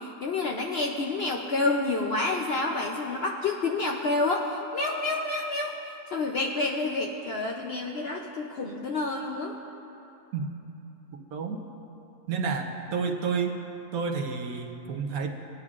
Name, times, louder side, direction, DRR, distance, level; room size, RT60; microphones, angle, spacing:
voice 1, 0.0-5.7 6.1-9.6, left 3 dB, 60° left, 1 dB, 0.7 m, -29 dB
voice 2, 11.3-11.6 12.3-13.6 13.9-15.3, right 5 dB, 70° right, 4 dB, 1.2 m, -30 dB
20.5 x 9.6 x 2.4 m, 2.9 s
omnidirectional pair, 1.6 m